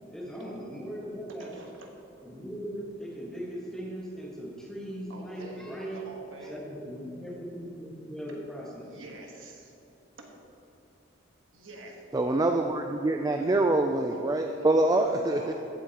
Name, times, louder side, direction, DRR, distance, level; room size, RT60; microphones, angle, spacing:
voice 1, 0.1-1.5 2.2-6.1 6.4-9.0, equal, 5° left, -3 dB, 1.4 m, -39 dB
voice 2, 1.4-1.9 5.1-5.7 5.9-6.6 8.8-9.7 10.2-10.3 11.5-12.0 14.1-15.6, right 2 dB, 75° right, 1 dB, 1.4 m, -45 dB
voice 3, 12.1-15.4, right 2 dB, 20° right, 4 dB, 0.3 m, -25 dB
15.0 x 8.5 x 2.9 m, 2.8 s
head